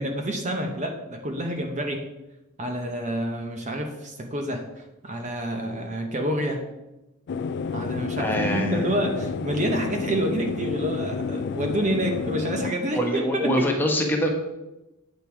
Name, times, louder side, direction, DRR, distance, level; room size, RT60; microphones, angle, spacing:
voice 1, 0.0-2.0 2.6-6.6 7.7-13.7, right 1 dB, 35° right, 3 dB, 0.9 m, -28 dB
sound 1, 7.3-12.7, left 5 dB, 50° left, 0.3 m, -30 dB
voice 2, 8.2-8.9 12.9-14.3, equal, 10° left, 0 dB, 1.3 m, -24 dB
9.0 x 6.7 x 4.6 m, 0.98 s
head